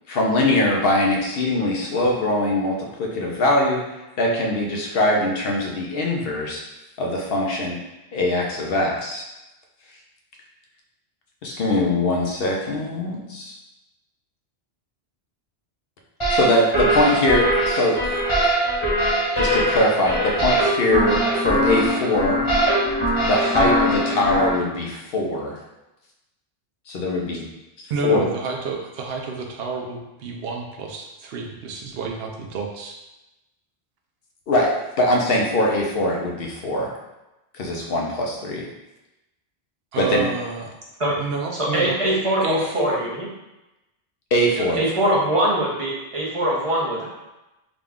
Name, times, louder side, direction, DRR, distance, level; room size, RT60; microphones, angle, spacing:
voice 1, 0.1-3.8 4.2-6.6 7.0-7.8 8.1-9.2 11.4-13.6 16.3-18.0 19.4-22.4 23.2-25.6 26.9-27.4 28.0-28.3 34.5-34.7 35.0-36.9 37.6-38.7 40.0-40.3 44.3-44.8, left 1 dB, 70° left, -1 dB, 0.8 m, -22 dB
sound 1, 16.2-24.6, equal, 30° left, 1.1 m, -21 dB
voice 2, 27.9-33.0 39.9-40.7 41.2-43.1 44.5-45.2, right 4 dB, 70° right, 1 dB, 0.8 m, -30 dB
voice 3, 41.7-43.1 44.8-47.1, right 1 dB, 35° right, -5 dB, 0.8 m, -22 dB
3.8 x 2.3 x 3.5 m, 0.98 s
omnidirectional pair, 1.1 m